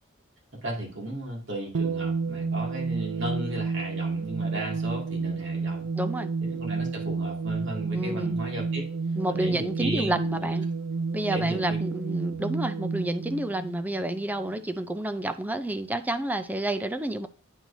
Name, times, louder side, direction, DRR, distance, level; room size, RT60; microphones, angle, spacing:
voice 1, 0.5-5.9 6.4-8.8 9.3-10.5 11.3-11.8, right 1 dB, 60° right, -2 dB, 2.3 m, -35 dB
sound 1, 1.7-14.6, right 4 dB, 75° right, 0.5 m, -30 dB
voice 2, 6.0-6.3 7.9-8.4 9.2-10.7 11.1-17.3, right 1 dB, 10° right, 9 dB, 0.4 m, -30 dB
10.5 x 4.5 x 2.7 m, 0.42 s
head